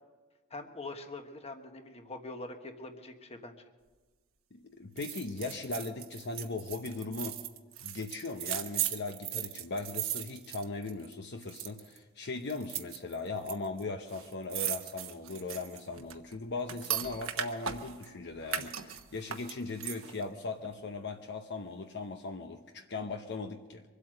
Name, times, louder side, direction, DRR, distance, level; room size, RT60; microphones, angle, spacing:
voice 1, 0.5-3.7, left 2 dB, 30° left, 6 dB, 1.3 m, -44 dB
voice 2, 4.5-7.4 7.8-23.8, left 3 dB, 55° left, 5 dB, 0.8 m, -38 dB
sound 1, 5.0-11.1 11.4-12.0 12.5-13.5 13.8-13.9 14.1-18.1 18.5-20.2 20.6-20.7, right 10 dB, 70° right, 1.1 m, -37 dB
24.5 x 8.4 x 6.5 m, 1.3 s
head